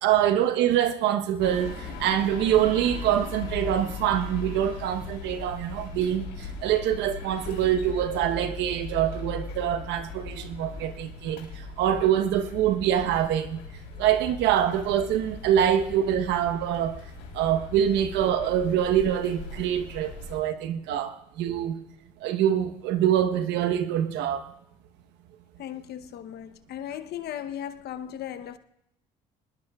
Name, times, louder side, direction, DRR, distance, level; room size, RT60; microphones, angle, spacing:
voice 1, 0.0-13.6 14.0-17.0 17.3-21.8 22.2-24.5, right 10 dB, 80° right, 1.1 m, -25 dB
sound 1, 1.4-20.4, left 4 dB, 90° left, 3.5 m, -39 dB
voice 2, 25.6-28.6, left 10 dB, 65° left, 0.9 m, -37 dB
25.0 x 20.5 x 2.4 m
supercardioid pair, 65°, 18 cm